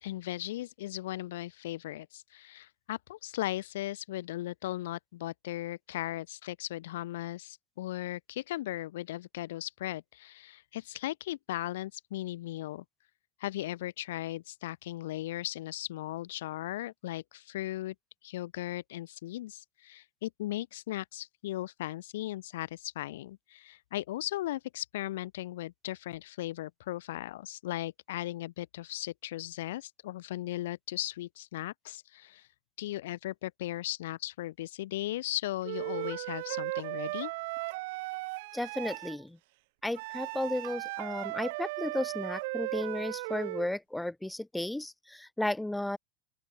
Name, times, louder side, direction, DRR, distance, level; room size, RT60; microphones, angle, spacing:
voice 1, 0.0-12.8 13.4-18.0 18.2-32.5 32.8-37.3, left 15 dB, 60° left, 5.2 m, -37 dB
Wind instrument woodwind instrument, 35.6-39.2 39.9-43.7, right 24 dB, 55° right, 3.9 m, -37 dB
voice 2, 38.5-39.4 39.8-46.0, left 1 dB, 5° left, 1.4 m, -34 dB
open air
figure-of-eight pair, 80°, 0 cm